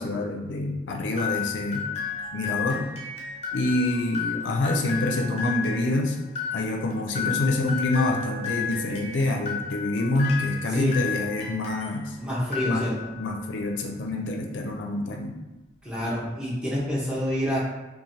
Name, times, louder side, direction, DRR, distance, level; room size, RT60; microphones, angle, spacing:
voice 1, 0.0-1.8 2.3-2.8 3.5-6.2 6.5-12.2 12.6-12.8 13.2-15.3, left 2 dB, 90° left, 1 dB, 0.4 m, -26 dB
sound 1, 1.2-12.0 12.4-13.3, left 8 dB, 35° left, 0.5 m, -33 dB
Mallet percussion, 7.9-11.7, right 5 dB, 65° right, 1.1 m, -44 dB
voice 2, 12.2-13.1 15.8-17.6, equal, 5° right, -8 dB, 0.7 m, -28 dB
3.2 x 2.1 x 2.6 m, 1.1 s
head